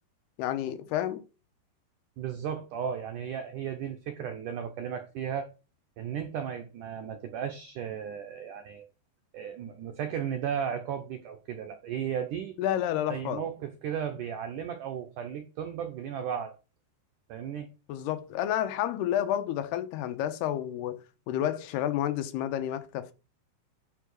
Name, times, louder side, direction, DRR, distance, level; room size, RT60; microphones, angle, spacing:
voice 1, 0.4-1.2 12.6-13.4 17.9-21.0 21.3-23.1, left 11 dB, 80° left, 2.9 m, -30 dB
voice 2, 2.2-5.5 6.0-8.9 9.3-12.6 13.1-16.5 17.3-17.7, right 8 dB, 75° right, 1.9 m, -35 dB
9.8 x 4.7 x 6.2 m
omnidirectional pair, 4.7 m